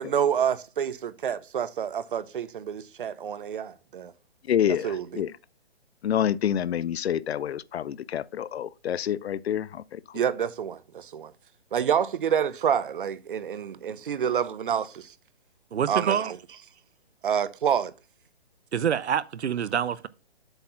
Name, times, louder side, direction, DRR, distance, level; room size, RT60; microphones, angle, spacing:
voice 1, 0.0-4.1 4.7-5.2 10.1-11.3 11.7-15.1 15.9-16.4 17.2-17.9, right 8 dB, 50° right, 0.7 m, -28 dB
voice 2, 4.5-5.3 6.0-9.7, left 10 dB, 70° left, 0.5 m, -27 dB
voice 3, 15.7-16.3 18.7-20.1, right 8 dB, 90° right, 0.7 m, -26 dB
7.9 x 4.3 x 5.6 m
hypercardioid pair, 165°, 32 cm